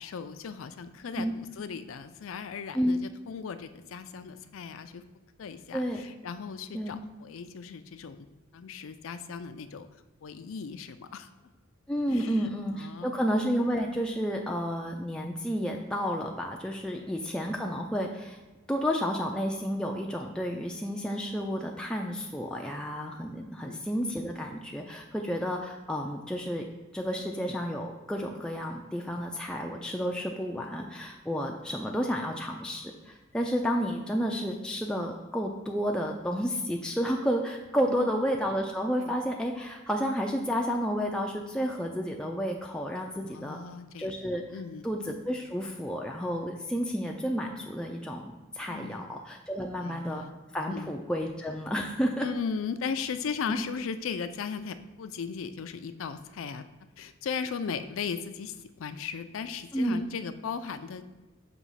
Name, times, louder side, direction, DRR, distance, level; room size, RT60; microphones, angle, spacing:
voice 1, 0.0-5.0 5.4-8.3 8.5-9.9 10.2-11.3 12.1-13.2 23.6-24.0 37.8-38.2 39.0-39.2 43.2-44.1 44.5-44.8 48.7-49.0 49.8-50.3 50.7-50.9 52.2-56.6 57.0-61.0, left 6 dB, 70° left, 11 dB, 0.4 m, -37 dB
voice 2, 11.9-18.4 18.7-26.6 26.9-43.6 44.0-44.4 44.8-50.2 50.5-52.3 53.5-53.6 59.7-60.0, equal, 5° left, 0 dB, 0.3 m, -31 dB
6.0 x 3.0 x 5.6 m, 1.2 s
head